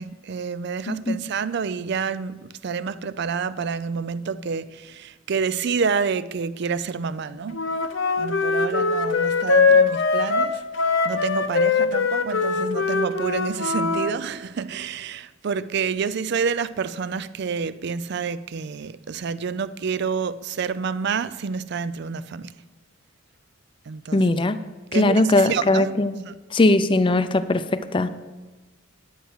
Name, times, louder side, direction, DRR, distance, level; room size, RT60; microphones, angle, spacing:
voice 1, 0.0-7.6 8.2-10.6 11.0-22.5 23.9-24.2 24.9-26.0 26.2-26.4, right 5 dB, 60° right, 0.4 m, -28 dB
voice 2, 0.9-1.2 24.1-24.6 24.9-26.2 26.5-28.1, left 2 dB, 25° left, 0.5 m, -20 dB
Wind instrument woodwind instrument, 7.5-14.1, left 4 dB, 75° left, 0.7 m, -21 dB
10.0 x 9.2 x 4.7 m
head